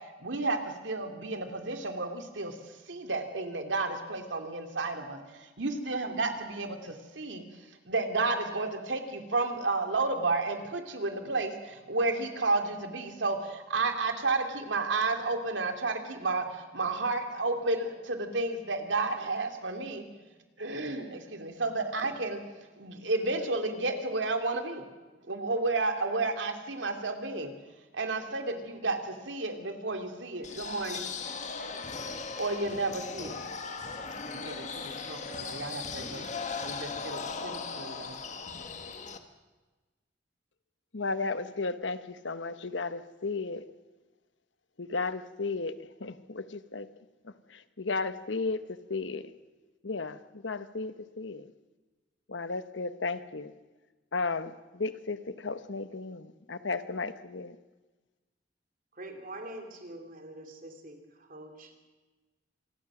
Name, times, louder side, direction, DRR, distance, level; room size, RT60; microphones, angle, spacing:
voice 1, 0.2-7.4 7.9-20.0 20.6-22.4 22.8-24.9 25.2-27.5 27.9-31.1 31.6-32.0 32.4-33.5 34.3-36.3 36.6-38.2, right 3 dB, 80° right, 6 dB, 2.7 m, -32 dB
sound 1, 30.4-39.2, left 4 dB, 40° left, 1.7 m, -38 dB
voice 2, 40.9-43.6 44.8-46.9 47.5-49.2 49.8-51.5 52.3-53.5 54.1-57.6, left 3 dB, 80° left, 12 dB, 1.1 m, -34 dB
voice 3, 58.9-61.8, right 1 dB, 50° right, 4 dB, 3.4 m, -45 dB
27.0 x 19.5 x 6.2 m, 1.2 s
head